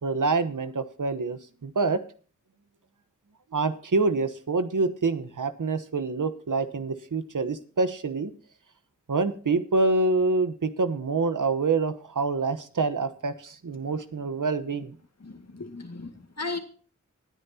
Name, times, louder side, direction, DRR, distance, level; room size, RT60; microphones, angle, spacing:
voice 1, 0.0-2.0 3.5-8.3 9.1-15.0, right 3 dB, 90° right, 1.1 m, -26 dB
voice 2, 15.2-16.6, left 3 dB, 60° left, 2.1 m, -36 dB
20.0 x 9.2 x 2.9 m
wide cardioid pair, 50°, 30 cm